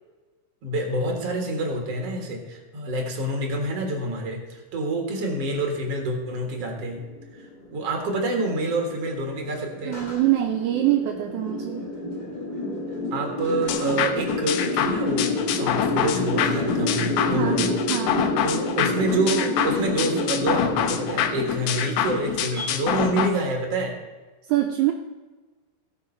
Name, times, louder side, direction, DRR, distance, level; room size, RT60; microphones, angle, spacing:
voice 1, 0.6-7.0 7.7-10.0 13.1-17.7 18.4-23.9, right 2 dB, 50° right, 2 dB, 2.4 m, -27 dB
sound 1, 6.3-22.7, left 2 dB, 35° left, 0.7 m, -29 dB
voice 2, 9.9-11.9 17.2-18.4 24.5-24.9, right 13 dB, 80° right, 3 dB, 1.7 m, -24 dB
sound 2, 13.7-23.3, left 10 dB, 85° left, 2.7 m, -26 dB
16.5 x 5.6 x 5.5 m, 1.3 s
omnidirectional pair, 4.2 m